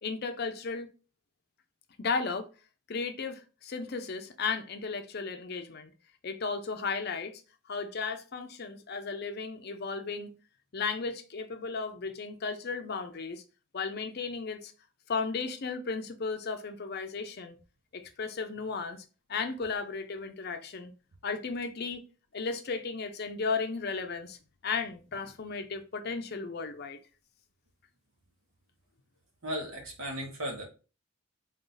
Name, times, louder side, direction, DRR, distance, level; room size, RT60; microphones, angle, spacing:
voice 1, 0.0-0.9 2.0-2.5 2.9-5.9 6.2-7.4 7.7-10.3 10.7-13.4 13.7-14.7 15.1-17.5 17.9-19.0 19.3-20.9 21.2-22.0 22.3-24.4 24.6-27.0, left 4 dB, 50° left, 0.5 m, -35 dB
voice 2, 29.4-30.6, equal, 85° right, 1.3 m, -36 dB
3.8 x 2.6 x 3.8 m
head